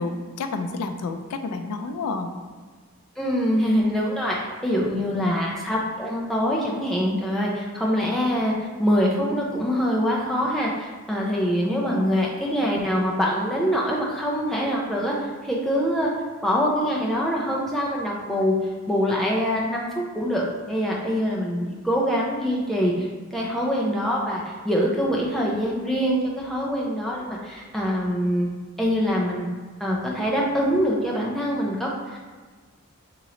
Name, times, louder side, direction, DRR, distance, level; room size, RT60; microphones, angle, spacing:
voice 1, 0.0-2.3 5.1-5.4 11.7-12.2, left 3 dB, 85° left, 6 dB, 0.3 m, -30 dB
voice 2, 3.2-4.4 4.6-8.5 8.8-16.1 16.4-19.9 20.1-28.5 28.8-29.5 29.8-32.2, equal, ahead, -4 dB, 0.4 m, -24 dB
3.0 x 2.9 x 3.7 m, 1.4 s
head